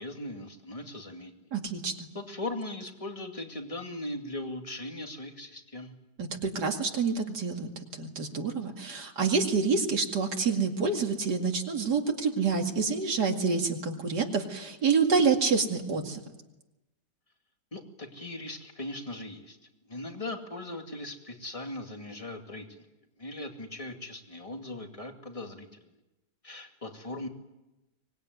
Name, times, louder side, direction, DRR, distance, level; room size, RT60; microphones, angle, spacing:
voice 1, 0.0-1.5 2.1-5.9 17.7-19.6 19.9-22.9 23.2-25.9 26.4-27.3, left 2 dB, 20° left, 4 dB, 2.5 m, -39 dB
voice 2, 1.5-2.1 6.2-16.2, right 5 dB, 70° right, 3 dB, 2.8 m, -27 dB
24.5 x 20.0 x 9.5 m, 1.0 s
omnidirectional pair, 1.8 m